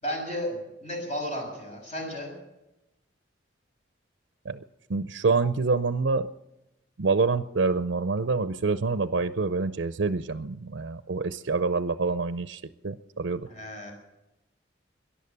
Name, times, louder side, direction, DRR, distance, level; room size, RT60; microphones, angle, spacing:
voice 1, 0.0-2.3 13.5-13.9, equal, 35° left, 1 dB, 6.2 m, -33 dB
voice 2, 4.9-6.3 7.0-13.5, right 4 dB, 70° right, 11 dB, 0.6 m, -26 dB
18.0 x 11.0 x 6.7 m, 0.94 s
head